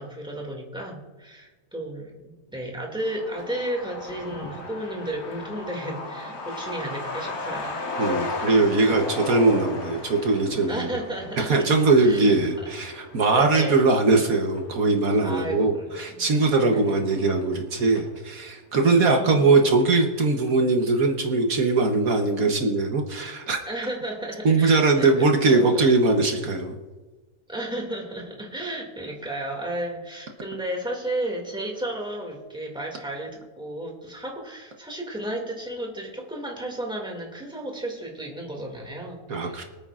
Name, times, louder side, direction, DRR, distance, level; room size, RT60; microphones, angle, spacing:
voice 1, 0.0-7.8 10.7-11.7 12.0-12.7 13.3-13.9 15.2-16.3 16.7-17.0 18.8-19.5 23.7-25.9 27.5-39.6, right 1 dB, 5° right, 0 dB, 2.1 m, -33 dB
Truck, 3.0-18.2 18.5-18.6 18.8-19.7 20.0-20.1 20.5-20.8, left 2 dB, 75° left, 2.0 m, -36 dB
voice 2, 8.0-10.9 11.4-23.6 24.4-26.8 39.3-39.6, right 3 dB, 65° right, 3 dB, 1.5 m, -21 dB
24.5 x 8.9 x 2.5 m, 1.3 s
omnidirectional pair, 1.6 m